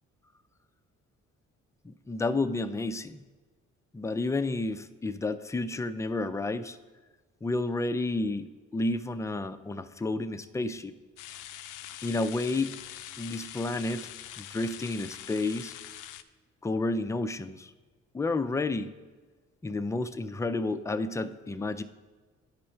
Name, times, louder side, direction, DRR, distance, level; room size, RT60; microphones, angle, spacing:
voice 1, 1.8-3.3 3.9-6.8 7.4-10.9 12.0-12.7 13.2-14.1 14.4-15.7 16.6-17.7 18.1-18.9 19.6-21.8, left 2 dB, 10° left, 11 dB, 0.3 m, -31 dB
sound 1, 11.2-16.2, left 12 dB, 85° left, 0.5 m, -43 dB
9.5 x 5.3 x 4.4 m, 1.4 s
cardioid pair, 90°, 30 cm